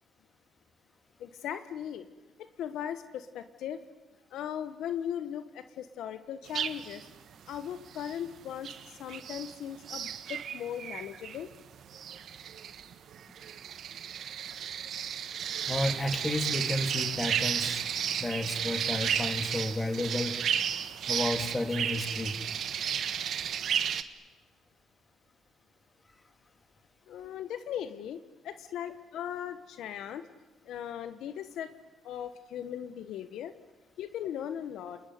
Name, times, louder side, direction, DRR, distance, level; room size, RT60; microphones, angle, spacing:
voice 1, 1.2-2.1 2.4-3.8 4.3-7.1 7.5-11.5 27.1-30.3 30.6-31.8 32.0-33.5 34.0-35.0, left 9 dB, 80° left, 11 dB, 1.2 m, -38 dB
sound 1, 6.5-7.1 7.5-8.3 8.6-9.6 9.8-24.0, right 8 dB, 65° right, 1.4 m, -33 dB
voice 2, 15.7-17.8 18.2-20.4 21.1-22.4, left 1 dB, 20° left, 7 dB, 2.7 m, -32 dB
29.0 x 21.0 x 9.5 m, 1.2 s
cardioid pair, 90°, 0 cm